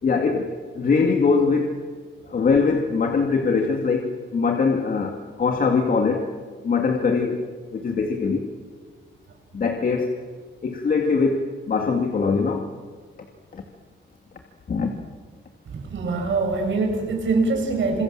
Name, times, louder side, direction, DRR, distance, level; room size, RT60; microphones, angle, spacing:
voice 1, 0.0-1.7 2.3-6.3 6.6-7.4 7.7-8.5 9.5-10.1 10.6-12.7 13.5-13.6 14.7-14.9, left 4 dB, 50° left, 3 dB, 2.4 m, -22 dB
voice 2, 15.7-18.0, right 3 dB, 80° right, 2 dB, 7.8 m, -23 dB
28.5 x 27.5 x 7.7 m, 1.5 s
wide cardioid pair, 180°, 19 cm